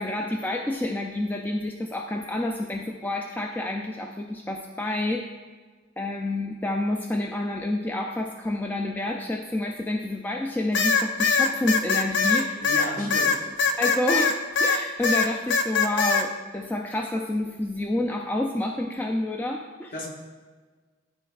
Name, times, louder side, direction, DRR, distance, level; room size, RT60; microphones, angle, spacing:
voice 1, 0.0-5.3 6.0-12.6 13.0-13.2 13.8-14.3 14.6-19.9, left 1 dB, 10° left, 1 dB, 0.3 m, -29 dB
sound 1, 10.7-14.8 15.0-16.2, left 4 dB, 65° left, 0.5 m, -22 dB
voice 2, 12.6-13.5 19.9-20.1, left 1 dB, 45° left, -1 dB, 1.2 m, -34 dB
12.0 x 4.2 x 2.4 m, 1.4 s
head